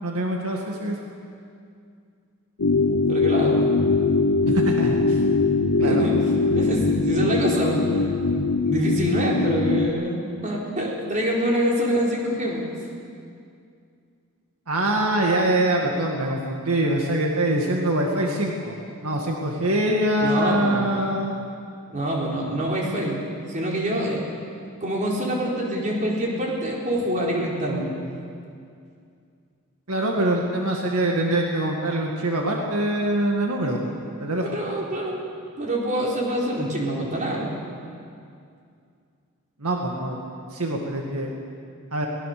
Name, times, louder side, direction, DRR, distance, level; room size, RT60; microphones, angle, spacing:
voice 1, 0.0-1.0 4.5-5.2 5.8-6.0 14.7-18.8 19.0-21.4 29.9-33.9 34.2-34.4 39.6-40.2 40.5-41.3 41.9-42.1, right 1 dB, 75° right, 0 dB, 2.0 m, -24 dB
sound 1, 2.6-9.9, left 3 dB, 70° left, 0.7 m, -21 dB
voice 2, 2.8-3.6 5.8-6.2 6.6-7.8 8.6-12.6 20.2-20.8 21.9-24.2 24.8-27.9 34.0-34.1 34.5-35.2 35.6-37.5, right 1 dB, 35° right, -3 dB, 4.2 m, -25 dB
22.5 x 18.0 x 6.8 m, 2.4 s
head